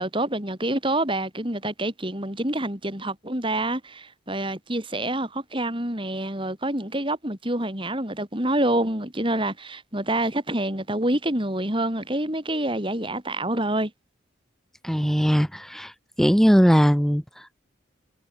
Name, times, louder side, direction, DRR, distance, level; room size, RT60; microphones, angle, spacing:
voice 1, 0.0-13.9, right 1 dB, 25° right, 4.7 m, -27 dB
voice 2, 14.8-15.9 16.2-17.6, equal, ahead, 4.8 m, -20 dB
head